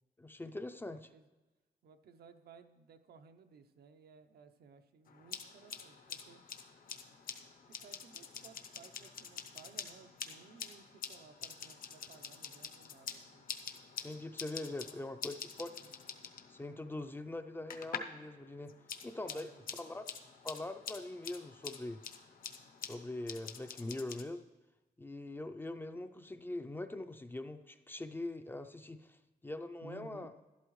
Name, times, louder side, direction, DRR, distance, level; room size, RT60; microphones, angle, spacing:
voice 1, 0.2-1.1 14.0-16.0 16.5-18.7 19.0-20.0 20.4-22.0 22.8-24.5 25.0-30.3, left 2 dB, 15° left, 9 dB, 0.4 m, -43 dB
voice 2, 0.9-1.2 1.8-6.4 7.7-13.5 14.4-15.1 19.2-19.7 29.8-30.3, right 5 dB, 80° right, 8 dB, 0.7 m, -58 dB
sound 1, 5.1-18.2 18.5-24.2, left 6 dB, 60° left, 0.8 m, -47 dB
12.0 x 11.5 x 3.1 m, 1.2 s
wide cardioid pair, 160°, 16 cm